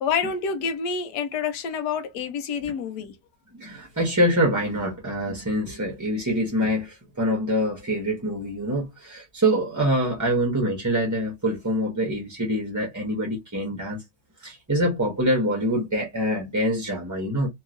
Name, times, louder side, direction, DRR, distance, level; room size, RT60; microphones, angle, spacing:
voice 1, 0.0-3.2, left 6 dB, 90° left, 1.3 m, -28 dB
voice 2, 3.5-14.0 14.4-17.5, equal, 20° right, 0.5 m, -25 dB
3.0 x 2.8 x 2.4 m
omnidirectional pair, 1.7 m